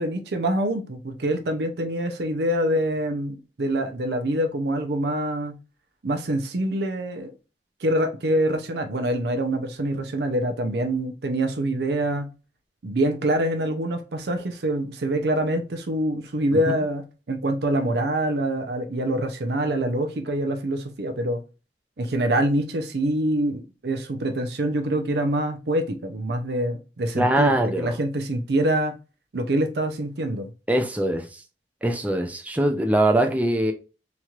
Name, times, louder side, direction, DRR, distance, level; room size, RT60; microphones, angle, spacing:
voice 1, 0.0-5.6 6.0-7.3 7.8-12.3 12.8-21.4 22.0-29.0 29.3-30.5, right 1 dB, 65° right, 0.6 m, -25 dB
voice 2, 27.1-27.9 30.7-31.4 31.8-33.7, right 1 dB, 10° right, 0.4 m, -22 dB
3.0 x 2.9 x 2.4 m
head